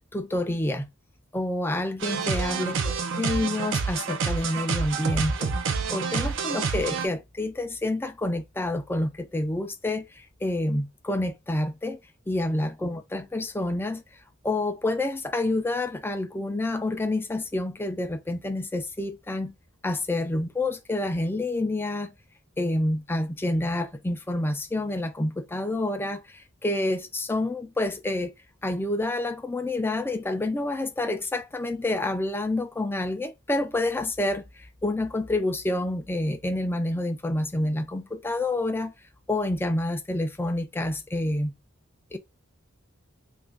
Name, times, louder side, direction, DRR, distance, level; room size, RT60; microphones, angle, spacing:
voice 1, 0.1-0.9 1.3-5.5 5.9-12.0 12.3-14.0 14.4-19.5 19.8-22.1 22.6-28.3 28.6-38.9 39.3-41.5 42.1-42.2, left 1 dB, 10° left, 0.4 m, -28 dB
sound 1, 2.0-7.1, right 5 dB, 60° right, 0.5 m, -28 dB
2.9 x 2.5 x 3.4 m
head